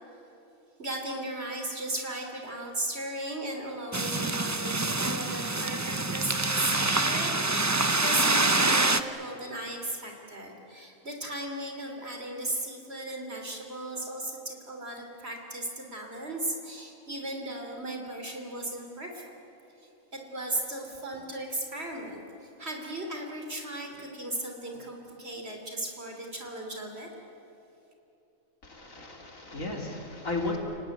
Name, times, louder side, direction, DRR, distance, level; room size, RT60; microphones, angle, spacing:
voice 1, 0.8-19.3 20.1-27.1, right 1 dB, 50° right, 2 dB, 3.6 m, -36 dB
sound 1, 3.9-9.0, right 2 dB, 15° right, 0.6 m, -26 dB
voice 2, 28.6-30.6, left 2 dB, 70° left, 1 dB, 3.7 m, -34 dB
30.0 x 19.0 x 9.2 m, 2.9 s
omnidirectional pair, 1.4 m